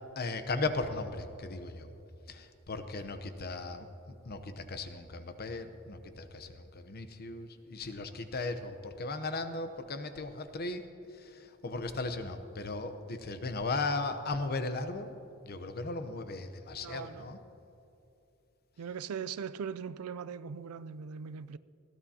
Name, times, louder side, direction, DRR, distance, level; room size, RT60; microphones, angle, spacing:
voice 1, 0.2-1.9 2.3-3.9 4.3-10.9 11.2-15.1 15.4-17.4, left 3 dB, 45° left, 0.8 m, -37 dB
voice 2, 16.8-17.3 18.8-21.6, right 6 dB, 85° right, 0.4 m, -40 dB
20.5 x 15.5 x 2.9 m
head